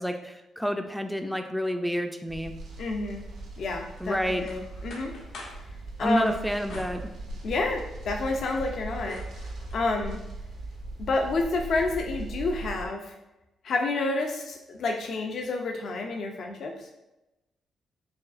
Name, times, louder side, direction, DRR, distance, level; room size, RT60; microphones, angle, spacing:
voice 1, 0.0-2.6 4.0-4.5 6.0-7.0, equal, ahead, 6 dB, 0.3 m, -29 dB
sound 1, 2.3-12.9, right 2 dB, 85° right, 0.8 m, -39 dB
voice 2, 2.8-3.2 3.6-5.1 6.0-6.4 7.4-9.2 9.7-10.2 11.0-13.1 13.6-16.9, left 3 dB, 65° left, 2 dB, 0.4 m, -29 dB
sound 2, 4.0-5.7 6.7-7.7 8.2-9.9, left 2 dB, 85° left, 0.8 m, -46 dB
4.9 x 2.3 x 2.5 m, 0.95 s
cardioid pair, 95°, 0 cm